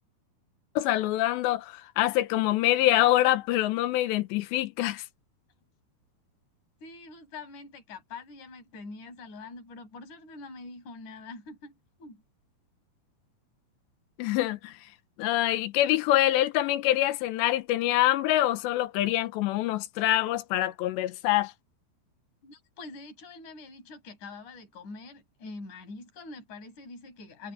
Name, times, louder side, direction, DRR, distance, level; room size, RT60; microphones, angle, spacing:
voice 1, 0.8-5.0 14.2-14.7 15.2-21.5, left 14 dB, 90° left, 3.1 m, -25 dB
voice 2, 6.8-11.7 12.0-12.2 22.4-27.5, left 3 dB, 45° left, 7.4 m, -44 dB
omnidirectional pair, 5.0 m